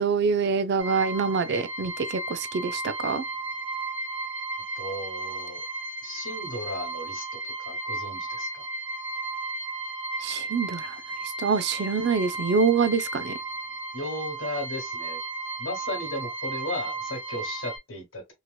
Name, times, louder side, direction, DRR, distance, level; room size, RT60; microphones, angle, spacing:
voice 1, 0.0-3.2 10.2-11.0 11.4-13.3, right 5 dB, 60° right, 0.4 m, -25 dB
sound 1, 0.8-17.8, right 2 dB, 15° right, 0.8 m, -34 dB
voice 2, 4.8-5.6 6.0-8.6 13.9-15.2 15.6-18.3, left 1 dB, 85° left, 1.2 m, -35 dB
2.9 x 2.8 x 2.3 m
head